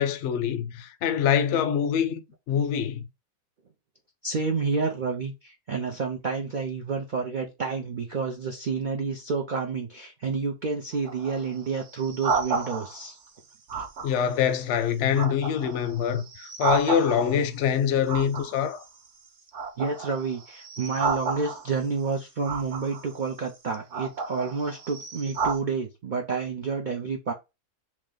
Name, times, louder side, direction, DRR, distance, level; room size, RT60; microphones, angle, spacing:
voice 1, 0.0-3.0 14.0-18.8, left 8 dB, 65° left, 0.7 m, -25 dB
voice 2, 4.2-13.2 13.7-13.9 19.8-27.3, right 4 dB, 80° right, 0.4 m, -29 dB
sound 1, 10.9-13.1 13.7-14.4 14.8-17.5 18.1-19.2 19.5-21.9 22.4-23.1 23.7-25.6, right 4 dB, 60° right, 1.0 m, -32 dB
3.1 x 2.9 x 3.7 m
omnidirectional pair, 1.6 m